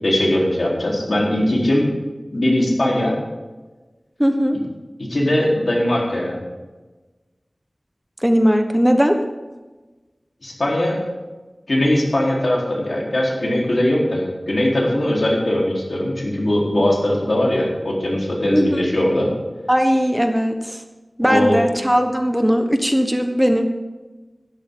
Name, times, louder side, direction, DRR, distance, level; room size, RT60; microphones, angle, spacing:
voice 1, 0.0-1.9 2.3-3.1 5.0-6.4 10.4-11.0 11.7-19.3 21.2-21.6, left 1 dB, 70° left, -3 dB, 3.9 m, -20 dB
voice 2, 4.2-4.6 8.2-9.2 18.5-18.9 19.7-20.8 21.2-23.6, equal, 5° right, 5 dB, 1.2 m, -18 dB
15.5 x 12.5 x 3.9 m, 1.2 s
wide cardioid pair, 50°, 0 cm